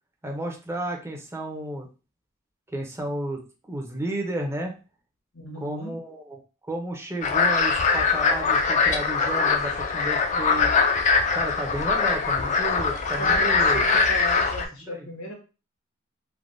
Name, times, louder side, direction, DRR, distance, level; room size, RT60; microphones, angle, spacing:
voice 1, 0.2-1.9 2.7-3.4 3.7-4.8 5.6-6.4 6.7-10.7 11.3-13.8 14.9-15.1, right 1 dB, 10° right, 1 dB, 0.6 m, -32 dB
voice 2, 5.3-5.9 13.2-15.3, equal, 80° left, 1 dB, 1.1 m, -35 dB
sound 1, 7.2-14.7, left 4 dB, 35° left, 0.4 m, -22 dB
3.2 x 2.2 x 2.5 m, 0.32 s
head